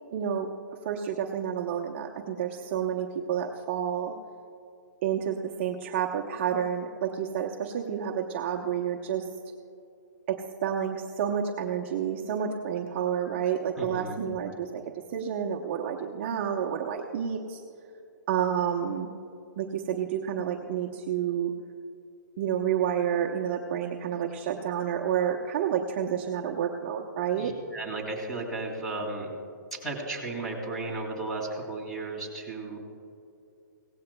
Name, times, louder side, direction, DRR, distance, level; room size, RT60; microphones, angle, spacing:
voice 1, 0.1-0.5 0.8-4.1 5.0-9.3 10.3-17.6 18.3-19.1 19.6-21.5 22.4-27.5, right 8 dB, 35° right, 0 dB, 0.8 m, -29 dB
voice 2, 13.8-14.2 27.3-29.3 29.7-32.8, right 2 dB, 5° left, -2 dB, 2.5 m, -34 dB
17.5 x 15.5 x 2.2 m, 2.6 s
hypercardioid pair, 155°, 10 cm